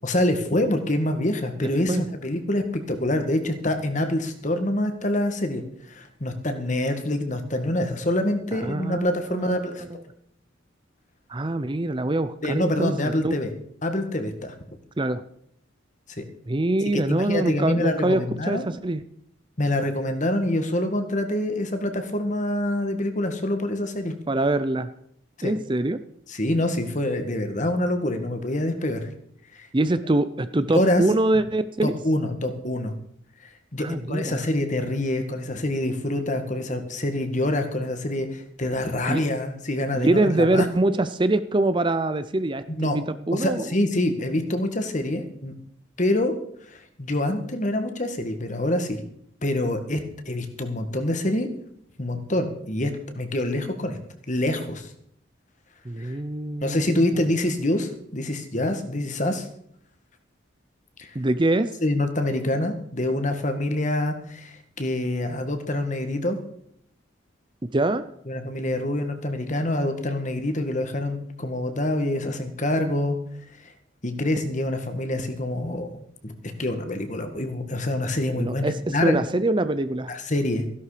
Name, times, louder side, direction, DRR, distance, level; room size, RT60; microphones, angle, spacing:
voice 1, 0.0-9.8 12.4-13.5 13.8-14.6 16.2-16.3 16.9-18.6 19.6-24.2 25.4-25.5 26.3-29.1 29.5-29.7 30.6-31.0 31.8-32.9 33.4-40.7 42.7-43.0 43.3-45.5 46.0-46.3 46.7-49.0 49.4-50.0 50.3-51.5 52.0-54.0 54.3-54.9 56.0-56.1 56.6-59.5 61.0-61.2 61.8-66.4 68.3-73.2 74.0-79.2 80.1-80.7, left 1 dB, 40° left, 7 dB, 1.8 m, -26 dB
voice 2, 1.6-2.1 8.5-10.0 11.3-13.3 15.0-15.2 16.5-19.0 24.3-24.9 25.4-26.0 29.7-31.9 33.8-34.4 39.1-39.2 39.9-43.7 55.9-57.0 61.1-61.7 67.7-68.1 78.3-80.1, right 2 dB, 25° right, 12 dB, 0.6 m, -24 dB
15.5 x 11.5 x 5.0 m, 0.68 s
head